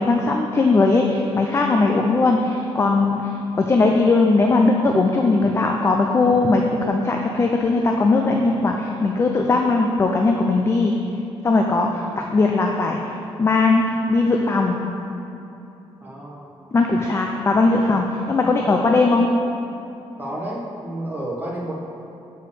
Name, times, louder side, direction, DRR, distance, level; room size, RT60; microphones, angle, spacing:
voice 1, 0.0-10.9 11.4-12.0 12.3-13.0 13.4-13.8 14.1-14.8 16.7-19.3, left 3 dB, 25° left, 2 dB, 0.4 m, -19 dB
voice 2, 16.0-16.5 20.2-21.8, right 1 dB, 20° right, -4 dB, 1.4 m, -31 dB
7.0 x 4.7 x 6.8 m, 2.9 s
cardioid pair, 155°, 10 cm